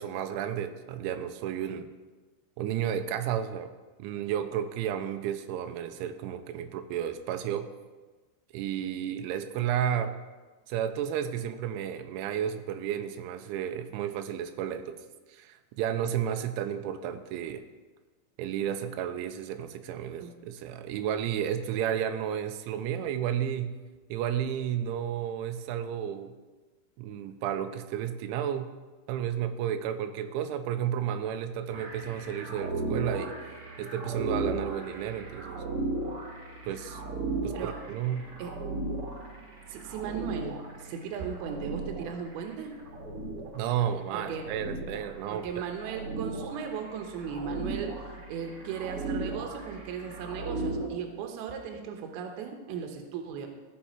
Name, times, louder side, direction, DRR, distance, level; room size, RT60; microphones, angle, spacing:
voice 1, 0.0-1.9 2.6-3.7 4.0-7.7 8.5-10.2 10.7-15.0 15.3-17.6 18.4-23.8 24.1-26.4 27.0-28.7 29.1-33.4 33.8-35.6 36.6-37.0 37.4-38.3 43.5-45.5, right 9 dB, 90° right, 8 dB, 3.0 m, -32 dB
sound 1, 31.7-50.9, right 3 dB, 50° right, 1.7 m, -36 dB
voice 2, 39.7-42.7 44.1-44.4 45.3-53.5, right 7 dB, 70° right, 4 dB, 2.6 m, -37 dB
15.5 x 5.5 x 4.4 m, 1.3 s
omnidirectional pair, 5.3 m